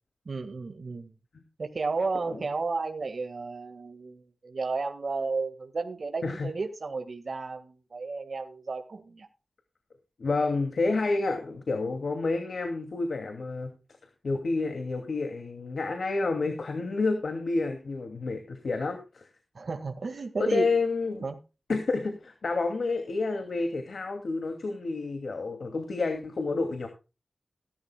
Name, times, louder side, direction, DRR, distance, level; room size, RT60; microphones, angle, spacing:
voice 1, 0.3-1.1 1.6-9.3 19.6-20.7 21.2-21.4, right 4 dB, 55° right, 5 dB, 1.8 m, -33 dB
voice 2, 10.2-13.7 14.2-19.3 20.4-21.2 21.7-26.9, left 3 dB, 70° left, 5 dB, 2.5 m, -29 dB
18.0 x 12.5 x 2.3 m, 0.30 s
wide cardioid pair, 95°, 0 cm